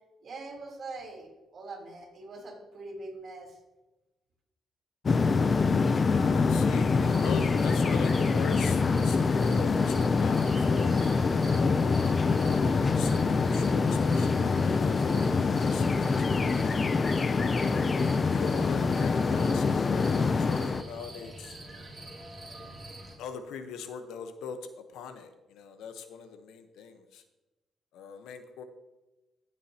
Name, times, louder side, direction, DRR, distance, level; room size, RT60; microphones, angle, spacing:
voice 1, 0.2-3.6, right 3 dB, 50° right, -1 dB, 3.5 m, -43 dB
sound 1, 5.1-20.8, left 4 dB, 35° left, 0.5 m, -25 dB
voice 2, 6.1-10.9 11.5-16.2 16.4-16.8 17.5-17.8 18.3-21.6 23.2-27.2 27.9-28.6, left 6 dB, 85° left, 8 dB, 1.0 m, -41 dB
sound 2, 7.0-23.2, right 1 dB, 20° right, 2.9 m, -45 dB
15.5 x 7.5 x 2.9 m, 1.1 s
cardioid pair, 90°, 0 cm